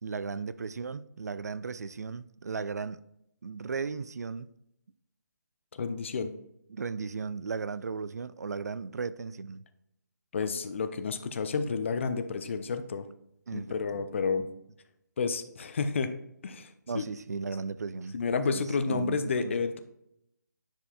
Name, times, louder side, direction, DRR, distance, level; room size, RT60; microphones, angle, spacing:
voice 1, 0.0-3.0 3.4-4.5 6.7-9.6 13.5-14.1 16.9-18.2 18.5-19.5, right 5 dB, 55° right, 0.4 m, -36 dB
voice 2, 5.7-6.3 10.3-13.1 13.5-14.5 15.2-16.1 16.4-17.0 18.1-19.8, left 5 dB, 40° left, 0.6 m, -30 dB
10.5 x 4.5 x 2.3 m
figure-of-eight pair, 145°, 10 cm